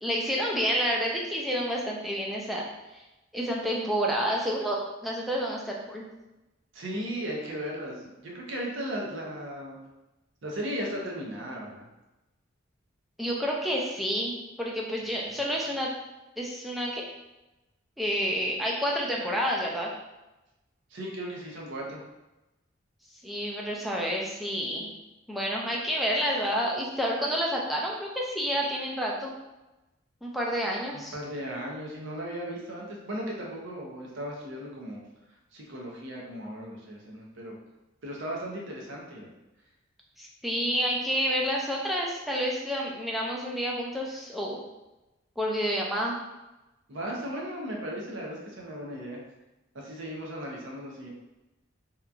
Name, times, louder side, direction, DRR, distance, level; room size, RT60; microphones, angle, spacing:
voice 1, 0.0-2.6 2.9-3.0 3.3-6.0 13.2-15.9 16.4-17.0 18.0-19.9 23.2-24.9 25.3-29.3 30.2-31.2 40.2-44.6 45.4-46.2, equal, ahead, -3 dB, 0.3 m, -29 dB
voice 2, 6.7-9.8 10.4-11.9 15.3-15.4 20.9-22.0 30.9-35.0 35.5-37.6 38.0-39.3 46.9-49.2 49.7-51.1, equal, 65° right, -2 dB, 0.6 m, -36 dB
2.9 x 2.2 x 2.4 m, 1.0 s
head